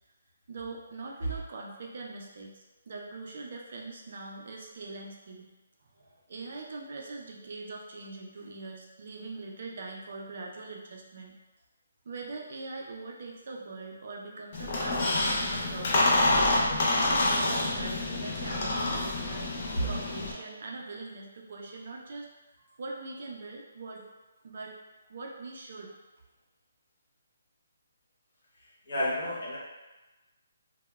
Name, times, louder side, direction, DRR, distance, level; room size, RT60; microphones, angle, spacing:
voice 1, 0.5-5.5 6.3-11.3 12.0-16.3 16.7-19.5 19.8-22.3 22.6-24.0 24.4-24.7 25.1-26.0, right 3 dB, 45° right, 0 dB, 0.3 m, -42 dB
Squeak, 14.5-20.3, left 2 dB, 35° left, 0.4 m, -27 dB
voice 2, 28.6-29.6, equal, 50° left, -7 dB, 0.9 m, -31 dB
3.0 x 2.0 x 2.2 m, 1.1 s
hypercardioid pair, 175°, 0 cm